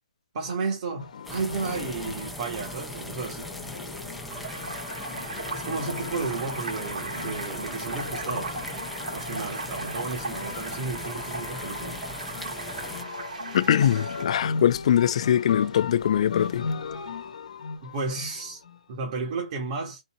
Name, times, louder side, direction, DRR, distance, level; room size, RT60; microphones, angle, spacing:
voice 1, 0.3-3.5 5.5-8.6 9.1-12.0 17.8-18.6 18.9-20.0, right 4 dB, 45° right, 1.5 m, -33 dB
sound 1, 1.0-18.8, left 5 dB, 65° left, 1.1 m, -37 dB
sound 2, 1.2-13.0, equal, ahead, 0.6 m, -39 dB
sound 3, 4.3-14.2, right 3 dB, 85° right, 2.3 m, -37 dB
voice 2, 13.5-16.7, left 10 dB, 50° left, 0.4 m, -22 dB
4.1 x 2.6 x 4.2 m
hypercardioid pair, 150°, 4 cm